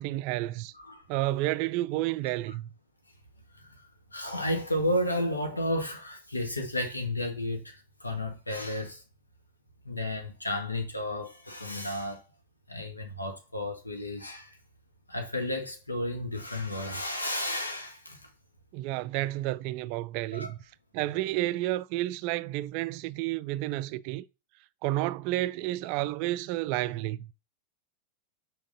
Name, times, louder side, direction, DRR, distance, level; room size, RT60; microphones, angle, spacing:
voice 1, 0.0-0.7 1.1-2.7 18.7-20.6 20.9-24.2 24.8-27.3, right 16 dB, 45° right, 0.3 m, -30 dB
voice 2, 0.7-1.1 3.5-9.0 9.8-12.2 12.7-14.6 15.1-18.3 20.3-20.5, left 1 dB, 80° left, 1.6 m, -32 dB
6.4 x 4.6 x 3.9 m
figure-of-eight pair, 90°, 0 cm